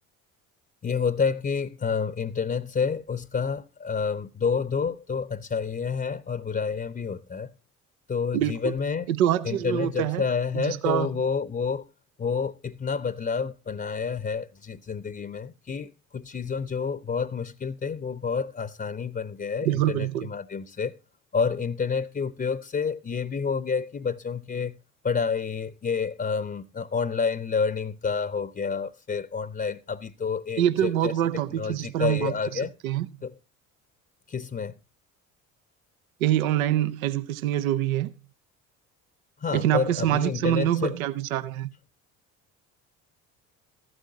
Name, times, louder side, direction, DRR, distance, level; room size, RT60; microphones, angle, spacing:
voice 1, 0.8-7.5 8.1-9.1 9.4-11.8 12.2-21.0 21.3-24.8 25.0-31.1 31.6-32.7 33.2-33.3 34.3-34.7 39.4-41.0, left 5 dB, 20° left, 0.7 m, -29 dB
voice 2, 8.3-8.7 9.1-10.2 10.5-11.2 19.6-20.3 30.6-33.1 36.2-38.1 39.5-41.7, right 12 dB, 85° right, 0.7 m, -25 dB
14.5 x 12.0 x 2.7 m
hypercardioid pair, 60°, 41 cm